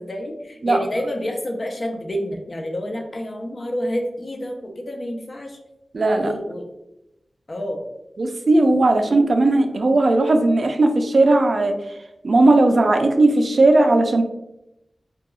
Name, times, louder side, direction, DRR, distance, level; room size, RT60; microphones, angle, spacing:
voice 1, 0.0-5.6 6.2-6.6 7.5-7.8, equal, 45° left, 3 dB, 0.4 m, -28 dB
voice 2, 5.9-6.3 8.2-11.8 12.2-14.2, right 2 dB, 60° right, 5 dB, 0.3 m, -17 dB
2.3 x 2.2 x 2.9 m, 0.87 s
wide cardioid pair, 100°, 0 cm